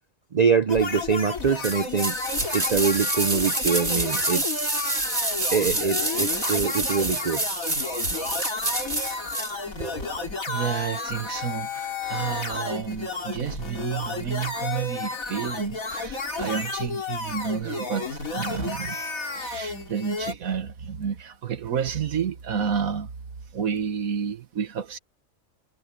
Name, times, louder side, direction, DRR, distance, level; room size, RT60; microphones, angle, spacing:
voice 1, 0.3-2.2 2.5-4.7 5.5-7.4 9.8-10.1, right 6 dB, 60° right, 0.4 m, -24 dB
sound 1, 0.7-20.3, left 3 dB, 75° left, 3.5 m, -32 dB
sound 2, 1.6-9.5 9.8-9.9, right 2 dB, 30° right, 3.1 m, -28 dB
voice 2, 10.5-19.0 19.3-23.1 23.5-25.0, right 7 dB, 85° right, 1.8 m, -30 dB
omnidirectional pair, 1.5 m